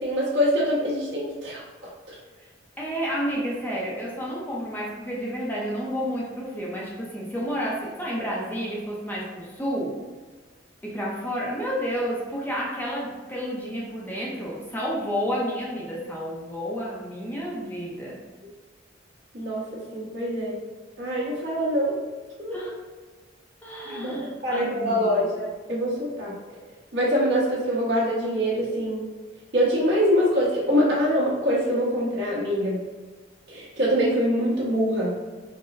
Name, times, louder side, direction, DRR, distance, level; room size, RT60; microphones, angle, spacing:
voice 1, 0.0-1.6 2.1-2.2 19.3-20.6 21.0-22.0 22.4-22.7 23.8-26.3 26.9-29.1 29.5-32.8 33.5-35.1, equal, 65° right, -7 dB, 1.1 m, -24 dB
voice 2, 2.8-10.0 10.8-18.2 22.5-22.7 23.6-25.3, equal, 10° left, -5 dB, 0.5 m, -30 dB
3.8 x 2.0 x 2.5 m, 1.4 s
head